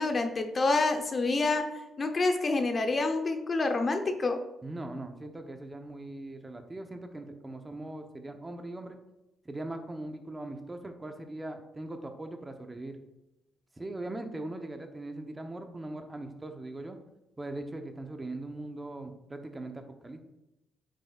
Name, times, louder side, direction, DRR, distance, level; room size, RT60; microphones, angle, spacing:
voice 1, 0.0-4.4, left 3 dB, 35° left, 6 dB, 0.9 m, -28 dB
voice 2, 4.6-9.0 9.4-13.0 13.8-17.0 17.4-20.2, right 2 dB, 20° right, 6 dB, 0.9 m, -40 dB
9.5 x 6.5 x 2.4 m, 0.95 s
cardioid pair, 90°, 0 cm